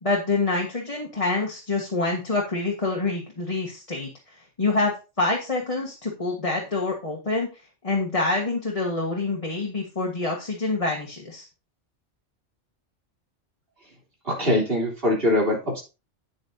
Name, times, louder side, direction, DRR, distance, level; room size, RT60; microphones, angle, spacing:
voice 1, 0.0-4.1 4.6-7.5 7.8-11.5, left 3 dB, 30° left, -1 dB, 1.7 m, -26 dB
voice 2, 14.3-15.8, left 1 dB, 50° right, -2 dB, 3.7 m, -22 dB
9.2 x 8.6 x 2.8 m, 0.30 s
omnidirectional pair, 1.2 m